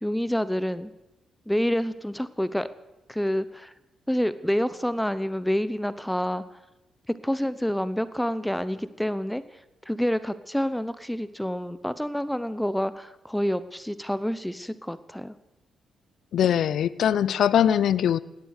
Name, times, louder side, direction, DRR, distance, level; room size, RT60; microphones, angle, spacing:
voice 1, 0.0-0.9 1.5-2.7 3.1-3.7 4.1-6.4 7.1-9.4 9.9-15.3, equal, 5° left, 14 dB, 0.8 m, -28 dB
voice 2, 16.3-18.2, left 9 dB, 75° left, 18 dB, 0.6 m, -21 dB
17.0 x 11.5 x 6.5 m, 0.98 s
cardioid pair, 65°, 0 cm